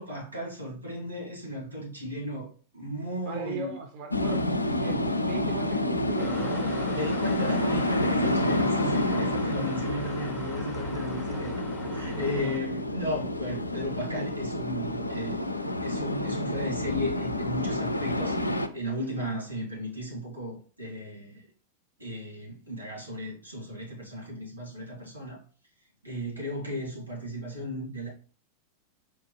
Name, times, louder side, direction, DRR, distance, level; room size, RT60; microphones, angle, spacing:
voice 1, 0.0-3.8 6.9-11.5 11.9-15.4 15.8-21.5 22.0-25.4 26.0-28.1, equal, 85° right, 1.9 m, -35 dB
voice 2, 3.2-7.2 12.4-12.5, right 5 dB, 45° right, 0.5 m, -39 dB
sound 1, 4.1-18.7, left 1 dB, 85° left, 0.3 m, -29 dB
sound 2, 6.2-12.6, left 2 dB, 10° left, 0.5 m, -42 dB
4.4 x 2.4 x 3.0 m
figure-of-eight pair, 90°, 0 cm